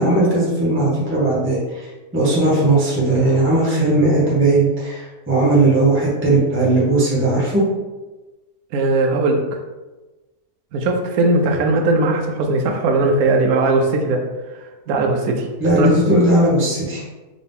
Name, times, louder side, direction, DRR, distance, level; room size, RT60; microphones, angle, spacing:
voice 1, 0.0-1.6 2.1-7.6 15.6-17.0, right 2 dB, 10° right, -6 dB, 0.8 m, -17 dB
voice 2, 8.7-9.4 10.7-14.2 14.9-15.5 15.8-15.9, right 2 dB, 70° right, 2 dB, 1.1 m, -18 dB
3.8 x 2.7 x 3.5 m, 1.2 s
omnidirectional pair, 1.7 m